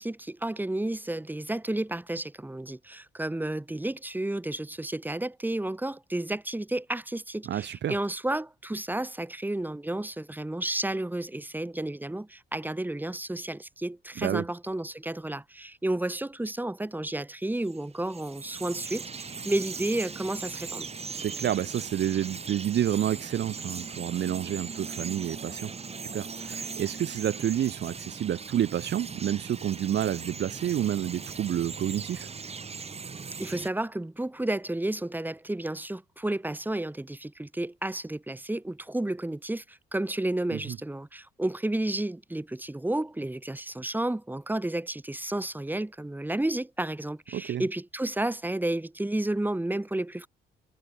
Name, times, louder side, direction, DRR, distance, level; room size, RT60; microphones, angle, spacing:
voice 1, 0.0-20.9 33.4-50.3, right 1 dB, 10° right, 2.9 m, -31 dB
voice 2, 7.4-7.9 14.2-14.4 21.1-25.7 26.0-32.3 40.5-40.8 47.3-47.6, right 11 dB, 60° right, 1.2 m, -29 dB
Bird vocalization bird call bird song, 17.6-33.7, right 5 dB, 30° right, 2.2 m, -39 dB
cardioid pair, 90°, 20 cm